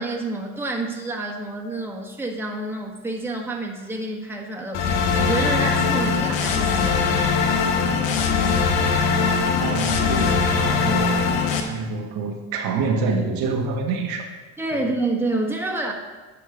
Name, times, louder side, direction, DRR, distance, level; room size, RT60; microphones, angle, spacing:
voice 1, 0.0-4.8 5.2-7.3 14.6-15.9, right 2 dB, 5° right, 1 dB, 1.4 m, -28 dB
sound 1, 4.7-11.6, left 5 dB, 80° left, 1.2 m, -21 dB
voice 2, 9.6-11.3 11.6-14.3 14.7-14.8, right 4 dB, 70° right, 2 dB, 1.4 m, -27 dB
10.0 x 5.2 x 5.0 m, 1.3 s
supercardioid pair, 90°, 37 cm